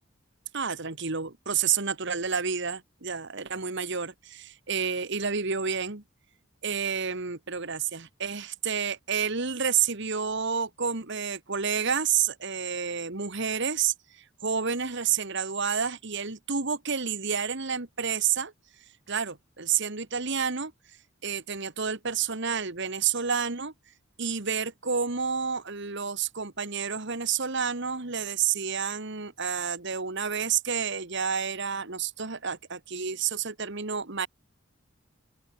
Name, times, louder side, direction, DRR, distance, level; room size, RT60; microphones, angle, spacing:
voice 1, 0.5-6.0 6.6-18.5 19.1-20.7 21.2-23.7 24.2-34.3, right 6 dB, 55° right, 1.7 m, -29 dB
open air
head